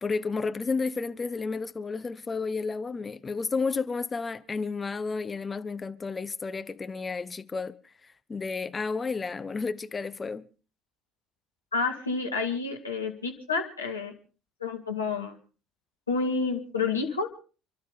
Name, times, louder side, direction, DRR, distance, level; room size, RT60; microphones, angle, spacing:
voice 1, 0.0-7.8 8.3-10.5, left 4 dB, 25° left, 1.0 m, -31 dB
voice 2, 11.7-14.1 14.6-15.3 16.1-17.3, left 4 dB, 85° left, 2.3 m, -29 dB
29.5 x 12.0 x 3.7 m
figure-of-eight pair, 60°, 0 cm